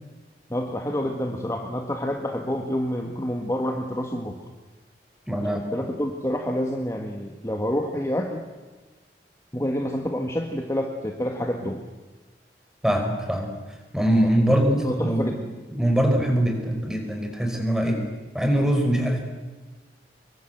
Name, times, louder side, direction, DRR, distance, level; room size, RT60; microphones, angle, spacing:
voice 1, 0.5-4.5 5.4-8.5 9.5-11.8 14.5-15.5 17.8-18.1, equal, 15° left, 2 dB, 1.8 m, -28 dB
voice 2, 5.3-5.8 12.8-13.5 13.9-15.3 15.7-18.0 18.3-19.2, equal, 5° right, 4 dB, 4.8 m, -23 dB
25.5 x 23.5 x 8.1 m, 1.3 s
head